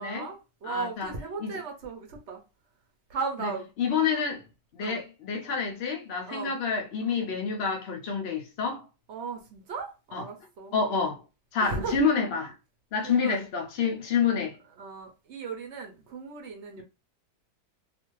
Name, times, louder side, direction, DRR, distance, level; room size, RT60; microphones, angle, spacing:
voice 1, 0.0-2.4 3.1-3.7 4.8-5.0 6.2-6.6 9.1-10.7 11.6-12.0 13.0-13.4 14.8-16.8, right 4 dB, 65° right, 0.7 m, -36 dB
voice 2, 0.6-1.1 1.4-1.6 3.4-3.5 3.8-4.4 4.7-8.9 10.1-10.2 10.7-11.2 11.5-12.5 12.9-14.5, left 5 dB, 80° left, 0.5 m, -28 dB
2.5 x 2.4 x 3.0 m
omnidirectional pair, 1.7 m